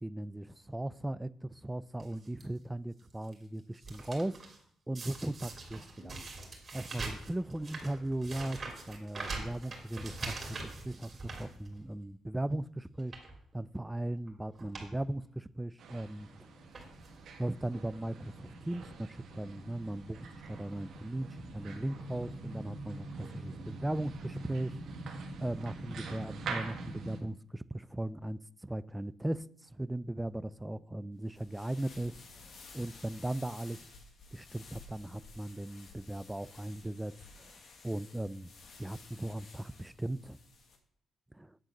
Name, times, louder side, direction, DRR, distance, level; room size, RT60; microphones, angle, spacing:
voice 1, 0.0-4.4 4.9-6.2 6.7-13.1 13.5-16.5 17.4-24.8 25.4-29.4 29.7-33.9 34.3-37.1 37.4-38.5 38.8-40.4 41.3-41.6, right 1 dB, 10° right, 0.3 m, -38 dB
sound 1, 2.0-2.4 3.0-3.3 3.6-4.6 4.9-12.0 12.4-12.6 13.0-13.4 14.2-14.3 14.5-14.9 15.2-15.3 16.2-16.4 16.7-17.2 18.0-18.1 18.3-18.4, right 3 dB, 35° right, 2.6 m, -43 dB
sound 2, 15.8-27.2, right 3 dB, 70° right, 1.3 m, -44 dB
sound 3, 31.3-40.8, left 3 dB, 55° left, 1.4 m, -54 dB
9.1 x 3.8 x 7.1 m
cardioid pair, 90°, 0 cm